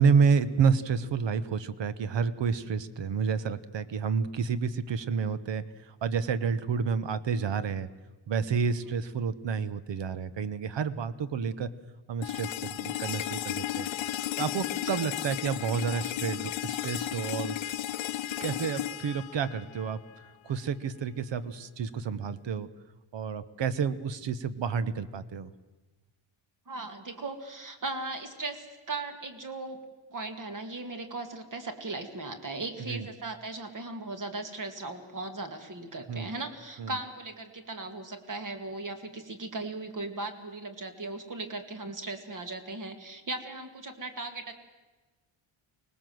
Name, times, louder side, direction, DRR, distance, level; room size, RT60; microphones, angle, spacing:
voice 1, 0.0-7.9 8.3-11.7 12.1-13.9 14.4-17.7 18.4-20.0 20.4-22.7 23.1-25.5 32.9-33.1 36.1-36.3 36.8-37.0, right 6 dB, 60° right, 15 dB, 1.1 m, -29 dB
sound 1, 12.2-20.2, left 13 dB, 65° left, 0.7 m, -34 dB
voice 2, 26.7-29.8 30.1-44.5, right 2 dB, 40° right, 7 dB, 2.1 m, -38 dB
24.5 x 19.0 x 7.8 m, 1.2 s
wide cardioid pair, 170°, 49 cm